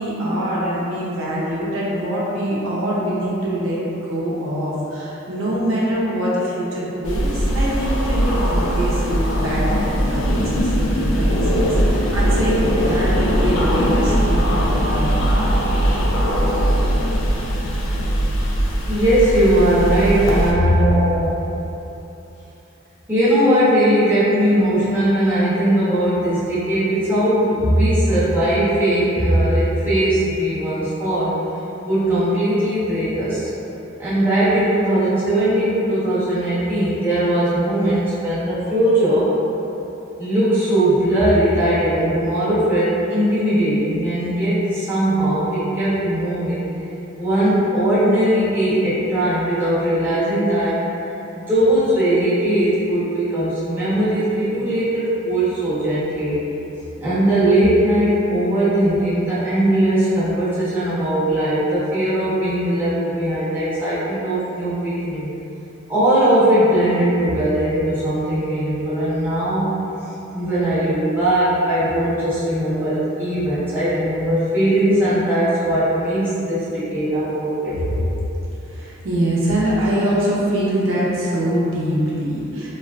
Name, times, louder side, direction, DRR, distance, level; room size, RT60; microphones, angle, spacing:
voice 1, 0.0-15.5 20.6-20.7 77.9-78.0 78.6-82.7, equal, 80° right, -7 dB, 0.6 m, -23 dB
sound 1, 7.0-20.5, equal, 70° left, 0.4 m, -20 dB
voice 2, 18.8-21.4 23.1-31.4 31.9-33.5 34.0-39.3 40.2-46.7 47.2-50.8 51.3-56.4 57.0-65.3 65.9-69.7 70.3-78.1, right 1 dB, 10° right, -13 dB, 0.8 m, -19 dB
3.3 x 2.4 x 2.4 m, 3.0 s
head